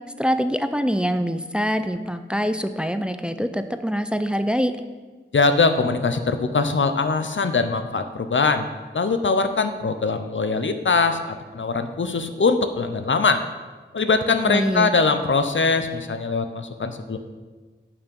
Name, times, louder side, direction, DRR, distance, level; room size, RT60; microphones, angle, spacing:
voice 1, 0.2-4.7 14.5-14.9, equal, 5° right, 9 dB, 0.5 m, -24 dB
voice 2, 5.3-8.7 8.9-13.4 13.9-17.2, left 4 dB, 75° left, 8 dB, 0.7 m, -22 dB
11.0 x 5.8 x 5.3 m, 1.3 s
wide cardioid pair, 70°, 20 cm